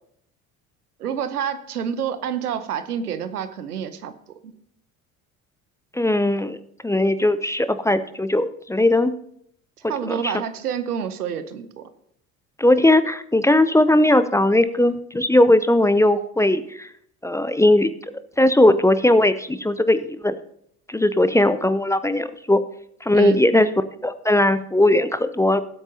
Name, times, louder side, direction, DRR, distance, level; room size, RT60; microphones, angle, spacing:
voice 1, 1.0-4.1 4.4-4.5 9.8-11.9 23.1-23.5, right 8 dB, 85° right, 12 dB, 0.9 m, -28 dB
voice 2, 5.9-6.6 6.8-9.2 10.1-10.3 12.6-16.9 17.2-17.9 18.4-20.4 20.9-22.6 23.0-23.7 24.0-25.6, left 1 dB, 5° left, 13 dB, 0.5 m, -18 dB
18.5 x 8.0 x 2.8 m, 0.70 s
figure-of-eight pair, 60°, 44 cm